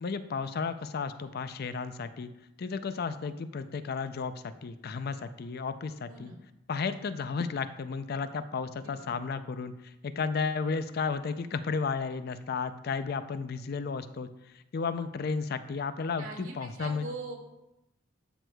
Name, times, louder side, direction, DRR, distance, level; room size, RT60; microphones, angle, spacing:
voice 1, 0.0-2.3 2.6-6.3 6.7-17.1, left 5 dB, 50° left, 11 dB, 0.4 m, -33 dB
voice 2, 6.1-6.4 8.8-9.1 16.2-17.4, right 3 dB, 85° right, 1 dB, 2.1 m, -42 dB
12.5 x 6.1 x 2.3 m, 0.89 s
head